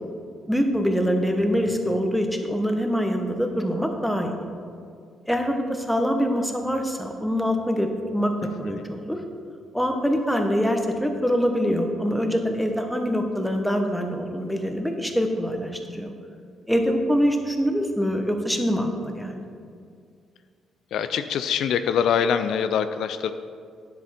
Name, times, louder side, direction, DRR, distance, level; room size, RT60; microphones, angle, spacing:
voice 1, 0.5-4.4 5.3-7.9 8.1-8.3 8.6-9.2 9.7-16.1 16.7-19.4, equal, ahead, 4 dB, 1.1 m, -24 dB
voice 2, 1.7-2.0 8.7-8.8 20.9-23.3, left 7 dB, 75° left, 10 dB, 0.4 m, -24 dB
9.9 x 7.6 x 4.4 m, 2.2 s
cardioid pair, 90°, 0 cm